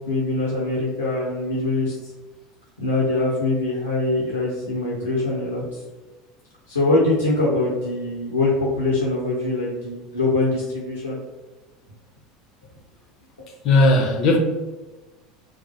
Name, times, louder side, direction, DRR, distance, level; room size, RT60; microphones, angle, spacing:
voice 1, 0.1-2.1 2.8-5.8 6.7-11.2, left 2 dB, 90° left, 0.6 m, -23 dB
voice 2, 13.6-14.4, left 2 dB, 45° left, 0.5 m, -16 dB
3.1 x 2.0 x 2.8 m
figure-of-eight pair, 70°, 0 cm